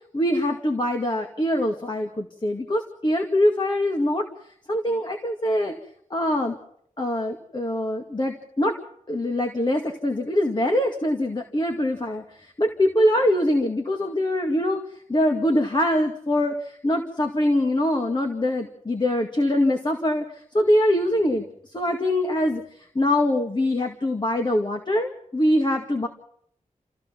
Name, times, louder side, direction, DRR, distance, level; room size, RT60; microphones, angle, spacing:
voice 1, 0.1-4.3 4.7-5.8 6.1-6.6 7.0-8.8 9.1-14.8 15.1-22.6 22.9-26.1, left 1 dB, 35° left, 3 dB, 2.2 m, -23 dB
29.0 x 15.5 x 6.1 m, 0.66 s
wide cardioid pair, 95°, 14 cm